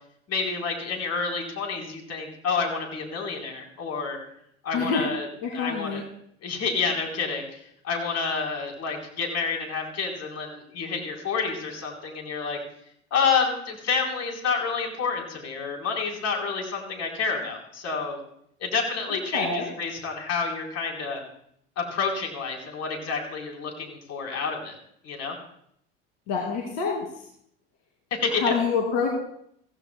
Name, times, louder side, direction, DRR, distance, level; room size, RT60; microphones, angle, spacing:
voice 1, 0.3-4.2 4.6-5.3 5.5-6.0 6.4-7.5 7.8-12.6 13.1-18.2 18.6-21.2 21.8-24.8 25.0-25.4 28.1-28.5, left 5 dB, 50° left, 1 dB, 3.9 m, -29 dB
voice 2, 5.4-6.0 19.3-19.7 26.3-27.1 28.3-29.1, left 5 dB, 70° left, -2 dB, 2.4 m, -26 dB
16.5 x 15.0 x 2.2 m, 0.69 s
hypercardioid pair, 75°, 32 cm